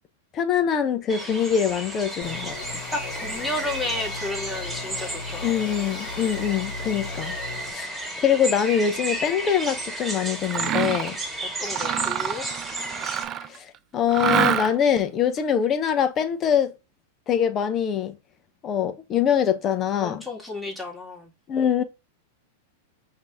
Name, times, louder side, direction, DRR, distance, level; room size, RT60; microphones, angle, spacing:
voice 1, 0.3-2.8 5.4-7.3 7.7-11.2 13.5-13.7 13.9-16.7 17.3-18.2 18.6-20.2 21.5-21.8, left 8 dB, 30° left, 0.8 m, -24 dB
sound 1, 1.1-13.2, right 1 dB, 10° right, 1.6 m, -33 dB
sound 2, 2.2-7.7, left 4 dB, 65° left, 1.4 m, -36 dB
voice 2, 2.9-5.5 11.6-12.5 20.0-21.3, left 2 dB, 5° left, 1.8 m, -32 dB
Mechanisms, 10.4-11.1 11.6-13.6 14.1-15.0, right 10 dB, 35° right, 0.4 m, -26 dB
5.2 x 2.8 x 3.6 m
hypercardioid pair, 120°, 0 cm